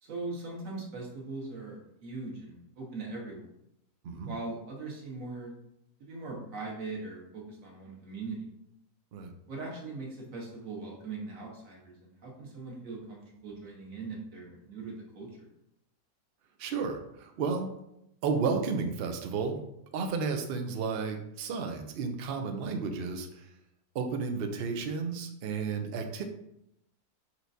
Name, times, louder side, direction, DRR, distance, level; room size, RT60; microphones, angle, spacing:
voice 1, 0.0-3.5 4.3-5.5 6.0-8.5 9.5-15.5, right 3 dB, 60° right, -1 dB, 1.4 m, -40 dB
voice 2, 16.6-17.7 18.2-19.6 19.9-23.5 23.9-26.2, right 5 dB, 85° right, 5 dB, 0.5 m, -32 dB
4.6 x 4.3 x 2.7 m, 0.80 s
omnidirectional pair, 1.7 m